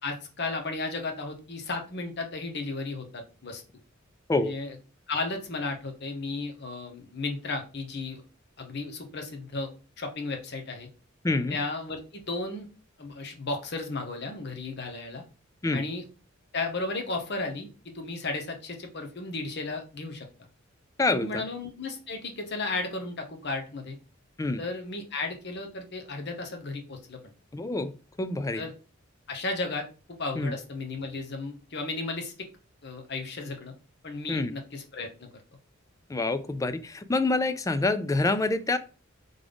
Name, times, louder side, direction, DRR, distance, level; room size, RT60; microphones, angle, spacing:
voice 1, 0.0-3.6 4.4-4.7 5.1-8.2 8.6-9.7 10.0-10.9 11.5-12.7 13.0-15.2 15.7-16.0 16.5-20.3 21.1-24.0 24.6-27.2 28.5-28.7 29.3-29.9 30.2-32.5 32.8-33.7 34.0-35.3, left 3 dB, 55° left, 4 dB, 1.0 m, -34 dB
voice 2, 11.2-11.6 15.6-15.8 21.0-21.4 24.4-24.6 27.5-27.9 28.2-28.6 30.4-30.5 34.3-34.5 36.1-38.8, left 2 dB, 15° left, 12 dB, 0.3 m, -26 dB
3.7 x 3.7 x 3.4 m, 0.34 s
head